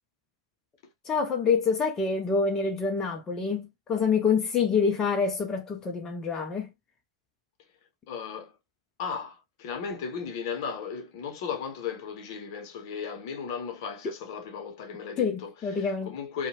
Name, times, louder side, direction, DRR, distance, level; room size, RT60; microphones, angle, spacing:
voice 1, 1.1-6.7 15.2-16.1, left 5 dB, 25° left, 0.5 m, -26 dB
voice 2, 8.1-8.5 9.0-16.5, left 6 dB, 50° left, 0.7 m, -36 dB
2.6 x 2.1 x 2.8 m
figure-of-eight pair, 100°, 3 cm